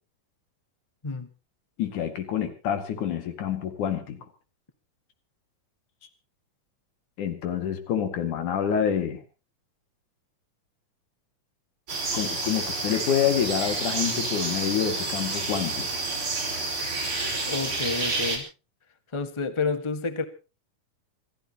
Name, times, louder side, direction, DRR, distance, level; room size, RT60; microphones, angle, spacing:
voice 1, 1.8-4.2 7.2-9.2 12.1-16.0, left 8 dB, 75° left, 7 dB, 3.6 m, -27 dB
sound 1, 11.9-18.4, right 3 dB, 40° right, 5.6 m, -29 dB
voice 2, 17.5-18.5 19.1-20.2, left 4 dB, 35° left, 9 dB, 0.4 m, -29 dB
28.0 x 14.0 x 3.0 m, 0.32 s
omnidirectional pair, 3.5 m